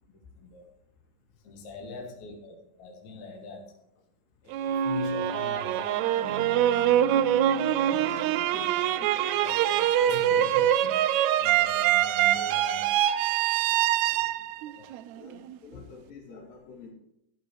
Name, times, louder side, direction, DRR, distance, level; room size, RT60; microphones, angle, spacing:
voice 1, 0.1-0.7 1.4-3.7 4.4-6.9 8.7-8.8 9.3-13.0 14.8-14.9, left 4 dB, 60° left, 2.7 m, -43 dB
sound 1, 4.5-15.5, right 11 dB, 90° right, 1.6 m, -24 dB
sound 2, 6.2-9.8, right 4 dB, 70° right, 2.9 m, -44 dB
voice 2, 8.3-9.1 15.2-16.9, left 5 dB, 85° left, 4.6 m, -47 dB
13.5 x 12.0 x 3.2 m
omnidirectional pair, 3.9 m